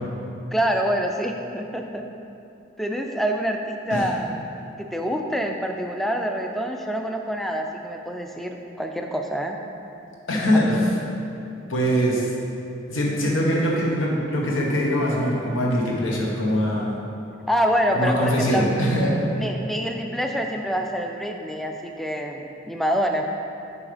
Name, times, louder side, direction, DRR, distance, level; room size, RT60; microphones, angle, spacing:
voice 1, 0.5-2.1 2.8-4.4 4.8-9.6 17.5-18.7 19.3-23.3, equal, ahead, 3 dB, 0.3 m, -26 dB
voice 2, 10.3-10.9 11.7-12.3 12.9-17.0 17.9-19.4, equal, 90° left, -3 dB, 1.1 m, -22 dB
7.1 x 5.4 x 3.4 m, 2.8 s
head